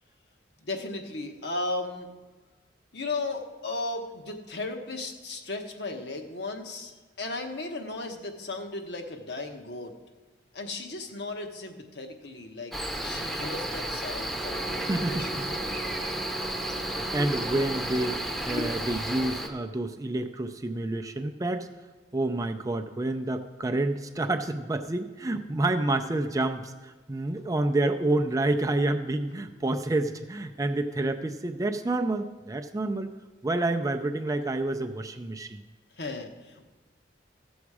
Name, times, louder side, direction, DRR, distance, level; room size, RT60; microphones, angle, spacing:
voice 1, 0.6-2.1 2.9-6.9 7.2-9.9 10.5-12.8 13.0-16.0 18.6-18.7 36.0-36.7, left 2 dB, 65° left, 3 dB, 1.1 m, -36 dB
Cricket, 12.7-19.5, right 1 dB, ahead, 0.8 m, -32 dB
sound 1, 14.3-18.6, right 3 dB, 50° right, 0.8 m, -41 dB
voice 2, 14.9-15.5 16.9-21.7 22.1-33.1 33.4-35.6, right 2 dB, 20° right, 6 dB, 0.4 m, -28 dB
14.5 x 7.1 x 4.8 m, 1.3 s
head